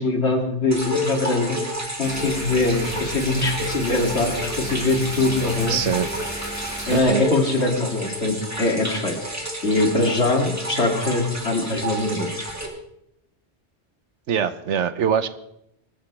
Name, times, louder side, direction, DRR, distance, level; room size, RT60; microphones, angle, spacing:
voice 1, 0.0-1.6 2.0-5.8 6.9-9.2 9.6-12.3, left 2 dB, 70° left, 1 dB, 2.8 m, -22 dB
sound 1, 0.7-12.7, equal, 15° right, 2.5 m, -30 dB
sound 2, 2.0-7.0, equal, 10° left, 4.6 m, -34 dB
voice 2, 5.7-6.1 6.9-7.3 14.3-15.3, right 8 dB, 80° right, 12 dB, 1.2 m, -23 dB
24.5 x 13.0 x 3.3 m, 0.78 s
omnidirectional pair, 1.2 m